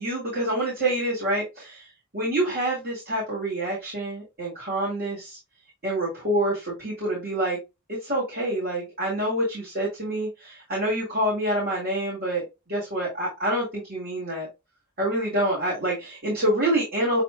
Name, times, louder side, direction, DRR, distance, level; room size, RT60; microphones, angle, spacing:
voice 1, 0.0-1.9 2.1-5.4 5.8-7.6 7.9-14.5 15.0-17.2, right 1 dB, 45° right, -5 dB, 2.5 m, -27 dB
7.3 x 3.0 x 2.3 m, 0.24 s
head